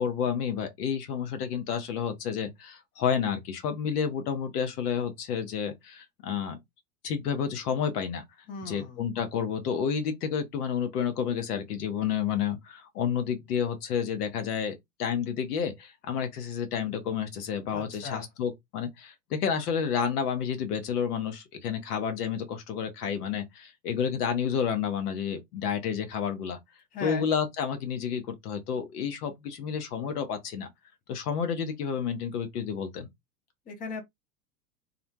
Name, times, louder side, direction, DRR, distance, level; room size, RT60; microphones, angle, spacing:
voice 1, 0.0-6.6 7.0-8.2 8.6-26.6 27.0-30.7 31.1-33.1, left 7 dB, 65° left, 1.0 m, -30 dB
voice 2, 8.5-9.0 17.7-18.3 26.9-27.3 33.7-34.0, left 4 dB, 15° left, 0.6 m, -37 dB
2.4 x 2.2 x 2.9 m
figure-of-eight pair, 90°, 50 cm